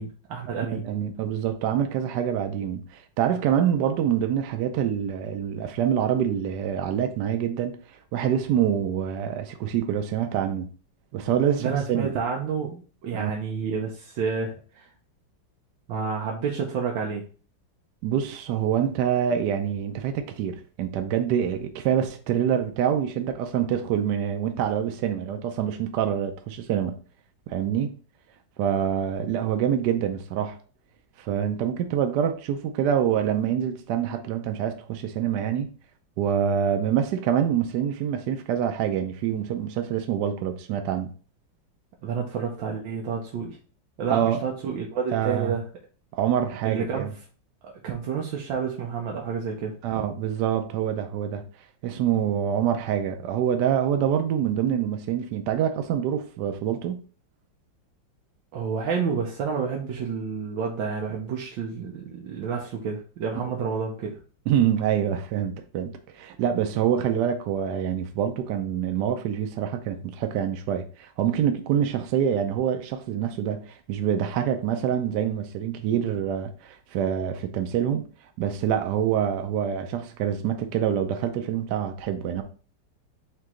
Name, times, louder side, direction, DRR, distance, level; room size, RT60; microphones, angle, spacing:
voice 1, 0.0-0.9 11.6-14.9 15.9-17.2 42.0-43.6 44.0-45.6 46.6-47.1 47.6-49.7 58.5-64.2, right 6 dB, 90° right, 1.5 m, -29 dB
voice 2, 0.7-10.7 11.1-12.1 13.1-13.3 18.0-27.0 27.5-27.9 28.6-30.6 31.2-35.7 36.2-41.1 44.1-44.4 45.1-45.5 46.1-47.1 49.8-51.4 51.8-57.0 64.5-78.1 78.4-82.4, right 9 dB, 70° right, 1.1 m, -26 dB
4.7 x 3.0 x 3.6 m
omnidirectional pair, 2.0 m